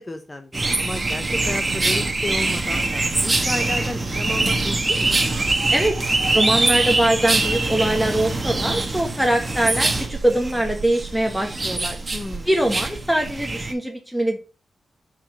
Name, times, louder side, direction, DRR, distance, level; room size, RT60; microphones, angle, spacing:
voice 1, 0.0-5.2 12.1-12.5, left 2 dB, 20° left, 7 dB, 0.8 m, -32 dB
sound 1, 0.5-13.7, right 2 dB, 25° right, 1.4 m, -23 dB
voice 2, 6.3-12.0 12.5-14.4, right 1 dB, ahead, 1 dB, 1.3 m, -22 dB
7.2 x 5.2 x 6.4 m, 0.34 s
wide cardioid pair, 115°, 0 cm